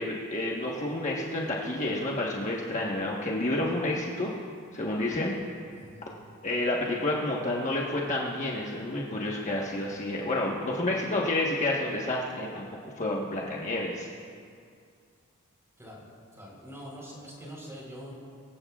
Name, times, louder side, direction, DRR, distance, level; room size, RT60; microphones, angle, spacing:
voice 1, 0.0-4.3 4.7-5.3 6.4-12.7 13.0-14.1, left 1 dB, 35° left, -3 dB, 1.3 m, -29 dB
voice 2, 5.7-6.0 15.8-16.1 16.3-18.1, equal, 15° right, -3 dB, 4.1 m, -44 dB
24.0 x 15.5 x 2.4 m, 2.3 s
head